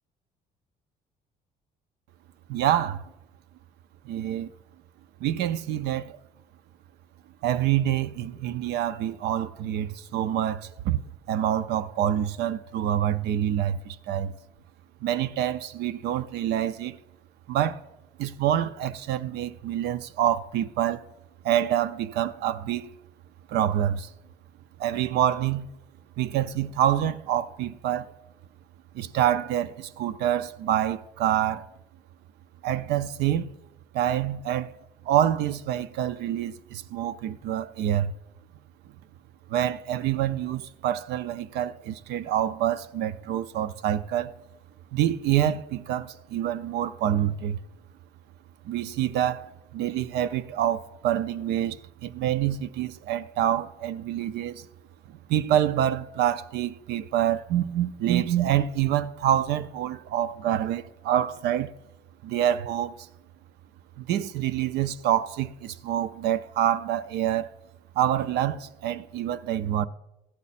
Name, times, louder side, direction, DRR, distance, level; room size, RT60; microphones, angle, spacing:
voice 1, 2.5-3.0 4.0-4.5 5.2-6.2 7.4-11.0 11.3-14.3 15.0-17.0 17.5-17.8 18.2-21.0 21.4-22.9 23.5-24.1 24.8-25.7 26.2-28.1 28.9-31.7 32.6-33.5 33.9-34.7 35.0-38.1 39.5-44.3 44.9-47.6 48.6-54.7 55.1-61.7 62.2-63.1 64.0-67.5 68.0-69.9, right 11 dB, 80° right, 0.5 m, -26 dB
13.5 x 8.4 x 4.2 m
cardioid pair, 110°, 17 cm